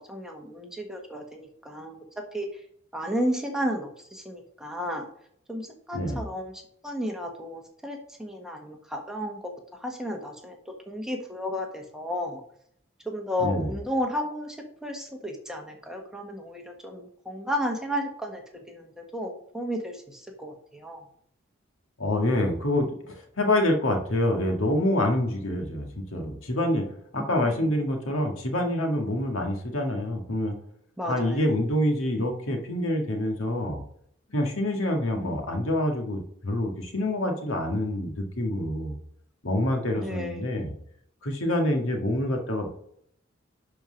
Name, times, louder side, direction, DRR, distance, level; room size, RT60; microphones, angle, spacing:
voice 1, 0.1-2.0 2.3-2.5 2.9-5.1 5.5-9.5 9.8-12.4 13.0-18.4 18.7-21.0 27.2-27.7 31.0-31.5 35.2-35.4 40.0-40.7, equal, 5° right, 1 dB, 1.2 m, -33 dB
voice 2, 22.0-26.9 27.1-30.6 31.1-33.8 34.3-39.0 39.4-40.7 41.2-42.7, left 1 dB, 75° left, 3 dB, 1.8 m, -26 dB
11.5 x 4.5 x 5.1 m, 0.69 s
head